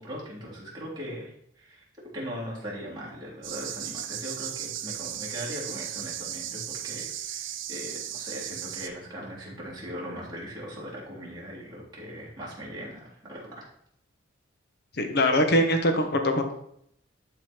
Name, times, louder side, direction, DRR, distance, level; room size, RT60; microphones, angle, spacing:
voice 1, 0.0-1.8 2.1-13.7, equal, 20° right, -7 dB, 3.4 m, -39 dB
sound 1, 3.4-8.9, right 11 dB, 70° right, 0.7 m, -36 dB
voice 2, 15.0-16.5, left 1 dB, 55° left, 6 dB, 1.2 m, -23 dB
12.0 x 4.1 x 4.5 m, 0.71 s
head